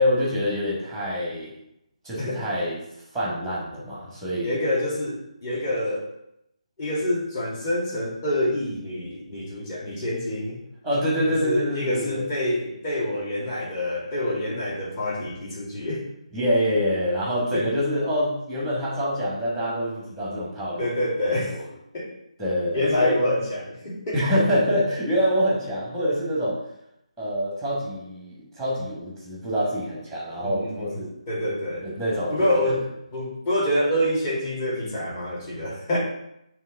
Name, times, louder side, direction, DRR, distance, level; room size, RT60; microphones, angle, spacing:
voice 1, 0.0-1.5 2.0-4.5 10.8-12.3 16.3-21.7 22.4-23.1 24.1-26.6 27.2-31.1 31.8-32.8, equal, 5° left, -6 dB, 1.5 m, -26 dB
voice 2, 4.4-6.1 6.8-10.6 11.2-16.1 17.5-17.7 20.8-21.6 21.9-22.1 22.7-24.2 30.4-31.0 31.3-31.9 32.3-32.8 33.1-36.0, left 1 dB, 25° left, -5 dB, 2.1 m, -26 dB
9.0 x 3.1 x 3.9 m, 0.79 s
figure-of-eight pair, 150°, 4 cm